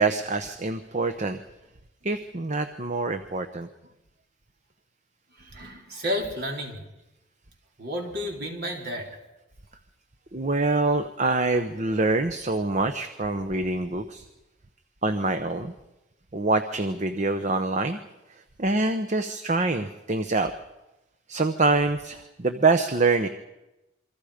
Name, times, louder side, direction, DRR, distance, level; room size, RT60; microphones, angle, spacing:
voice 1, 0.0-1.4 2.0-3.7 10.3-14.3 15.0-15.7 16.3-18.0 18.3-20.5 21.3-23.3, right 3 dB, 35° right, 8 dB, 0.9 m, -25 dB
voice 2, 5.3-6.9 7.8-9.2, equal, 55° right, 1 dB, 4.0 m, -32 dB
27.5 x 24.0 x 5.1 m, 0.98 s
head